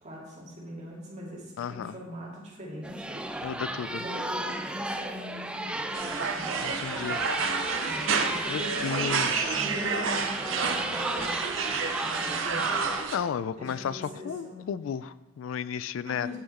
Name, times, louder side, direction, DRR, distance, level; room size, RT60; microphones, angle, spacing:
voice 1, 0.0-3.2 3.9-6.5 7.8-11.3 12.0-12.7 13.6-14.6 16.1-16.4, equal, 35° right, -4 dB, 2.2 m, -41 dB
voice 2, 1.6-1.9 3.4-4.0 6.6-7.3 8.5-9.6 13.1-16.4, left 7 dB, 80° left, 16 dB, 0.3 m, -33 dB
sound 1, 2.8-13.0, right 1 dB, 5° right, 0.3 m, -35 dB
sound 2, 5.9-13.2, right 5 dB, 80° right, 0.8 m, -29 dB
9.5 x 5.9 x 4.2 m, 1.1 s
head